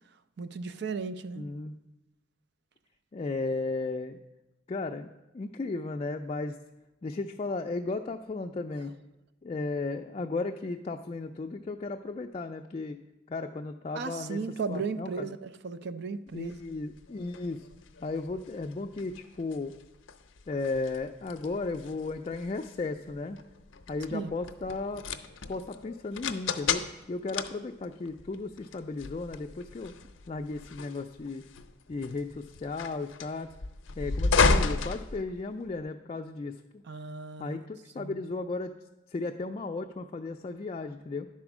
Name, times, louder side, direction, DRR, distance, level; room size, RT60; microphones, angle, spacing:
voice 1, 0.4-1.5 13.9-16.6 24.1-24.3 36.8-37.6 38.0-38.1, right 4 dB, 60° right, 0.4 m, -35 dB
voice 2, 1.4-1.8 3.1-4.2 4.7-6.6 7.0-8.9 9.4-13.0 13.3-14.4 14.7-15.3 16.3-17.7 18.0-19.8 20.5-23.4 23.9-25.0 25.5-30.0 30.3-31.4 31.9-33.5 34.0-36.8 37.4-38.7 39.1-41.3, left 3 dB, 30° left, 0.3 m, -35 dB
sound 1, 16.4-35.8, left 4 dB, 85° left, 0.6 m, -33 dB
10.5 x 4.3 x 6.0 m
head